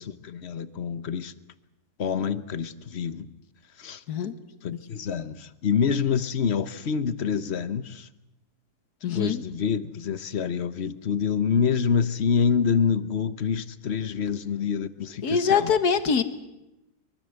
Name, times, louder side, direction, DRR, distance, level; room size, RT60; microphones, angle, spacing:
voice 1, 0.0-1.3 2.0-3.3 3.8-4.0 4.6-8.1 9.1-15.7, left 6 dB, 45° left, 1.2 m, -26 dB
voice 2, 9.0-9.4 15.2-16.2, left 6 dB, 75° left, 1.9 m, -23 dB
23.5 x 23.5 x 8.0 m
omnidirectional pair, 1.7 m